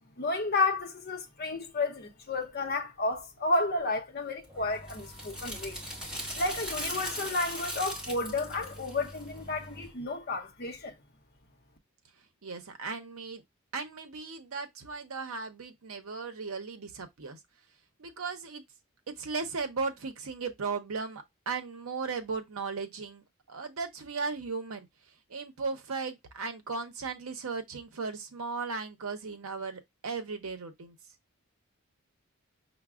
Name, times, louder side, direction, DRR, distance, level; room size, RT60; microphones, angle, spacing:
voice 1, 0.2-5.8 6.2-11.0, left 3 dB, 45° left, 0.7 m, -31 dB
sound 1, 4.4-9.9, equal, 5° right, 1.1 m, -39 dB
voice 2, 12.4-13.4 13.7-17.4 18.0-18.6 19.1-24.9 25.3-31.0, right 4 dB, 70° right, 0.7 m, -36 dB
5.8 x 2.0 x 2.3 m
head